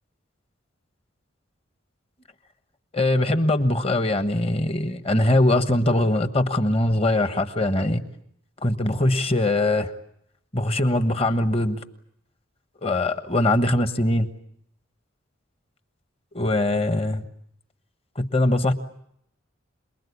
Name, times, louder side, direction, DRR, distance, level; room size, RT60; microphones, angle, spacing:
voice 1, 2.9-8.0 8.6-9.9 10.5-11.8 12.8-14.3 16.3-17.2 18.1-18.7, left 1 dB, 30° left, 9 dB, 1.3 m, -22 dB
27.5 x 20.5 x 8.4 m, 0.74 s
head